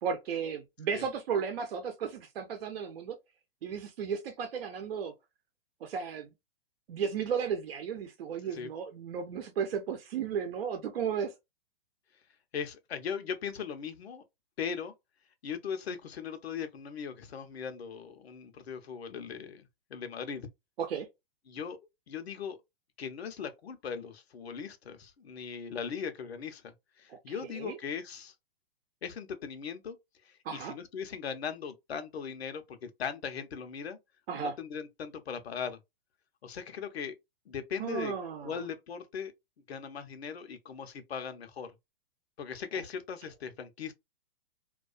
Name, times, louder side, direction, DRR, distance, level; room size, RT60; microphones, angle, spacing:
voice 1, 0.0-3.2 3.6-5.1 5.8-6.3 6.9-11.3 20.8-21.1 27.1-27.8 30.4-30.7 34.3-34.5 37.8-38.6 42.7-42.8, right 7 dB, 70° right, 0.7 m, -34 dB
voice 2, 12.5-14.2 14.6-14.9 15.4-20.5 21.5-21.8 22.1-22.6 23.0-28.3 29.0-30.0 30.2-34.0 34.3-35.8 36.4-37.1 37.5-38.1 38.4-39.3 39.7-41.7 42.4-43.9, left 7 dB, 85° left, 0.7 m, -39 dB
2.3 x 2.3 x 2.4 m
hypercardioid pair, 130°, 30 cm